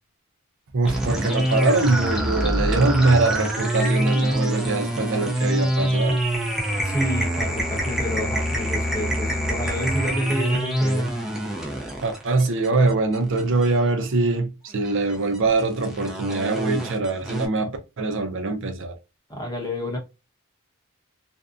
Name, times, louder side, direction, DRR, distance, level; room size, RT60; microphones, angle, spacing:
voice 1, 0.7-6.2 12.0-18.9, right 3 dB, 60° right, 0.5 m, -23 dB
sound 1, 0.8-13.9 14.8-17.5, right 1 dB, ahead, 0.5 m, -25 dB
voice 2, 6.8-11.1 19.3-20.0, equal, 15° left, 0.8 m, -28 dB
2.6 x 2.1 x 2.4 m
head